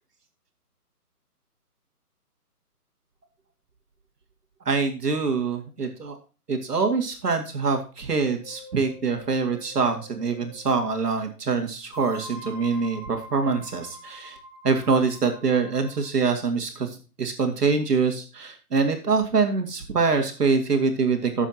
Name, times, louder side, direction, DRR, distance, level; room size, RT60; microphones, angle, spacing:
voice 1, 4.7-6.2 6.5-14.4 14.6-21.5, right 4 dB, 75° right, 4 dB, 2.3 m, -24 dB
sound 1, 8.4-10.7 11.9-16.2, right 1 dB, 5° left, 1.1 m, -44 dB
14.5 x 7.2 x 2.9 m, 0.35 s
hypercardioid pair, 180°, 47 cm